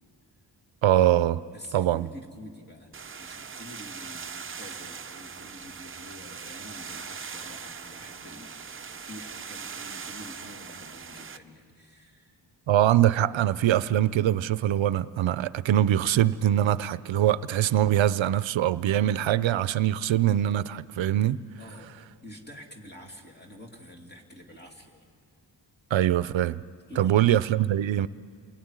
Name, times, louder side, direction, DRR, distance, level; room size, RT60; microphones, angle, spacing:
voice 1, 0.8-1.4 1.7-2.1 12.7-21.4 25.9-26.6 27.0-28.1, right 12 dB, 80° right, 0.6 m, -23 dB
voice 2, 1.5-2.9 3.2-12.4 21.6-25.1 26.9-27.3, left 1 dB, 20° left, 2.5 m, -47 dB
sound 1, 2.9-11.4, right 6 dB, 30° right, 0.7 m, -41 dB
28.0 x 21.0 x 9.7 m
wide cardioid pair, 180°, 45 cm